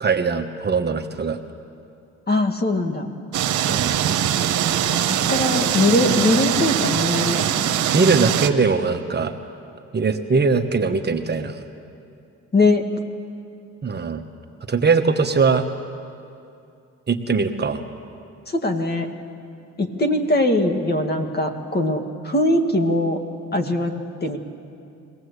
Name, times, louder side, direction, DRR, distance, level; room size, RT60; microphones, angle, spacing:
voice 1, 0.0-1.4 3.7-3.9 7.9-9.3 9.9-11.6 13.8-14.2 14.7-15.7 17.1-17.8, right 4 dB, 35° right, 5 dB, 1.2 m, -21 dB
voice 2, 2.3-3.1 5.0-7.4 12.5-12.9 18.5-19.1 19.8-23.2 23.5-23.9 24.2-24.4, left 2 dB, 35° left, 5 dB, 2.0 m, -21 dB
sound 1, 3.3-8.5, right 10 dB, 75° right, 1.2 m, -22 dB
22.5 x 17.5 x 8.2 m, 2.5 s
cardioid pair, 90°, 30 cm